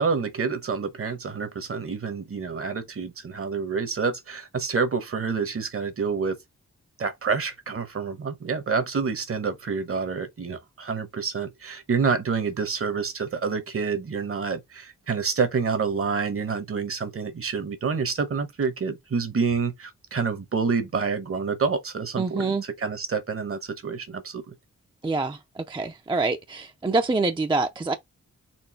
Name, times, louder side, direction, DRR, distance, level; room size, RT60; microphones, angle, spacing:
voice 1, 0.0-6.4 7.0-24.5, right 5 dB, 50° right, 1.0 m, -28 dB
voice 2, 22.2-22.6 25.0-27.9, right 3 dB, 15° right, 0.5 m, -26 dB
4.4 x 2.6 x 4.2 m
wide cardioid pair, 120°, 30 cm